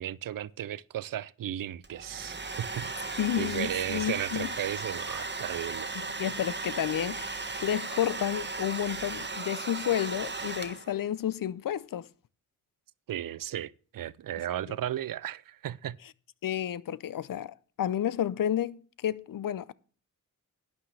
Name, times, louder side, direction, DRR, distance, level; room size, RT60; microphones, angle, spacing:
voice 1, 0.0-2.9 3.4-5.9 13.1-16.0, right 11 dB, 75° right, 0.5 m, -35 dB
Domestic sounds home sounds, 1.8-11.0, right 3 dB, 30° right, 1.4 m, -36 dB
voice 2, 3.2-4.5 6.0-12.1 16.4-19.7, left 10 dB, 75° left, 0.6 m, -31 dB
11.5 x 9.7 x 3.3 m
cardioid pair, 75°, 34 cm